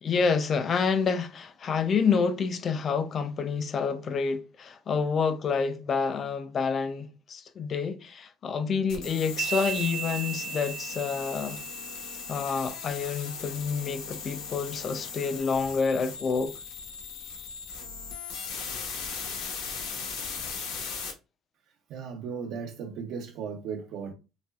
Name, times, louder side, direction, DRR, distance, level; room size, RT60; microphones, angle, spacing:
voice 1, 0.0-11.6 12.3-16.5, left 5 dB, 30° left, 0.3 m, -28 dB
sound 1, 8.9-21.1, left 5 dB, 85° left, 1.0 m, -38 dB
sound 2, 9.4-12.9, right 9 dB, 80° right, 0.9 m, -36 dB
voice 2, 21.9-24.1, right 6 dB, 55° right, 0.4 m, -36 dB
4.0 x 2.3 x 2.3 m
cardioid pair, 175°, 0 cm